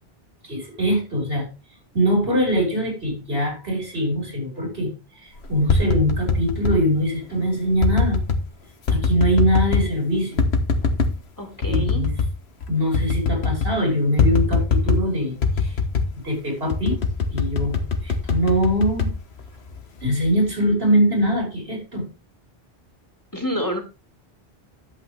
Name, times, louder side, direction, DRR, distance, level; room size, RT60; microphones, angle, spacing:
voice 1, 0.4-1.5 1.9-4.9 5.2-8.2 8.9-10.5 11.7-12.1 12.7-15.8 16.2-17.0 17.3-19.1 20.0-22.1, equal, 70° right, 1 dB, 5.6 m, -22 dB
sound 1, 5.4-6.8 7.8-8.4 8.9-9.9 10.4-11.2 11.6-12.3 12.6-12.7 12.9-13.8 14.2-15.1 15.4-16.2 16.7-19.8 20.2-20.6, left 4 dB, 85° left, 1.5 m, -22 dB
voice 2, 11.4-12.0 23.3-23.8, equal, 20° left, 4 dB, 1.9 m, -27 dB
11.5 x 8.0 x 3.4 m, 0.29 s
omnidirectional pair, 1.1 m